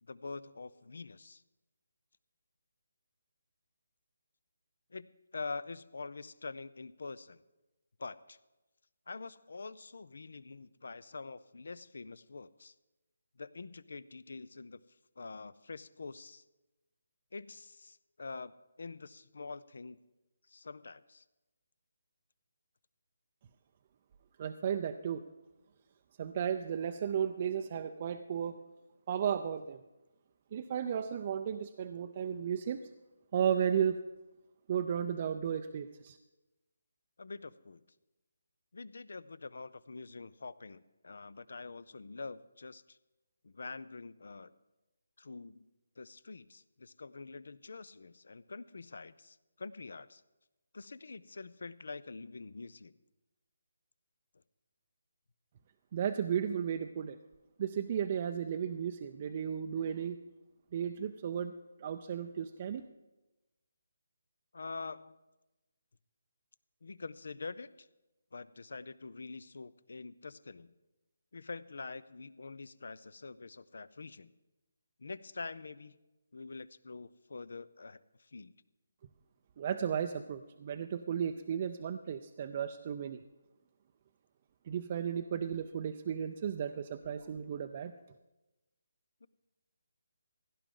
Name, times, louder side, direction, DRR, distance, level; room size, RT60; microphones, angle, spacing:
voice 1, 0.0-1.4 4.9-7.4 8.0-8.4 9.1-12.7 13.4-14.8 15.2-16.4 17.3-20.0 20.5-21.2 37.2-37.8 38.7-43.0 43.4-44.5 45.2-45.7 46.0-50.2 50.7-52.9 64.5-65.2 66.8-67.9 68.3-70.7 71.3-74.3 75.0-76.0 76.3-78.5 89.2-89.3, left 4 dB, 70° left, 19 dB, 0.5 m, -45 dB
voice 2, 24.4-25.2 26.2-28.6 29.1-29.8 30.5-32.9 33.3-34.0 34.7-36.2 55.9-57.2 57.6-60.2 60.7-61.5 61.8-62.8 79.6-83.2 84.7-87.9, right 8 dB, 40° right, 7 dB, 0.5 m, -34 dB
16.5 x 11.0 x 3.8 m, 1.0 s
figure-of-eight pair, 155°, 0 cm